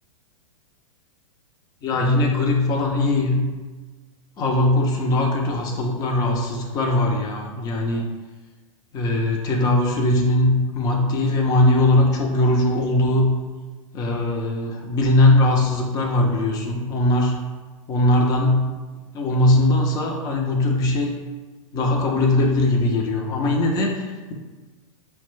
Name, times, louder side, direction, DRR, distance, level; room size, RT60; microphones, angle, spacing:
voice 1, 1.8-3.4 4.4-8.1 8.9-13.3 13.9-17.4 17.9-18.7 19.1-21.1 21.7-24.3, left 1 dB, 20° left, 0 dB, 0.5 m, -20 dB
5.6 x 2.2 x 3.1 m, 1.3 s
figure-of-eight pair, 110°, 18 cm